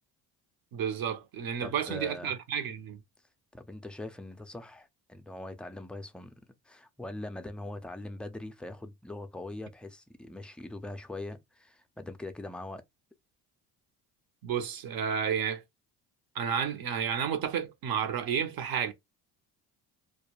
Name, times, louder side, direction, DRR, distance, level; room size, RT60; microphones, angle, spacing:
voice 1, 0.7-3.0 14.4-15.6 16.3-18.9, right 8 dB, 60° right, 0.8 m, -31 dB
voice 2, 1.6-2.3 3.5-12.8, left 2 dB, 5° left, 0.3 m, -42 dB
2.3 x 2.2 x 3.0 m
supercardioid pair, 85°, 40 cm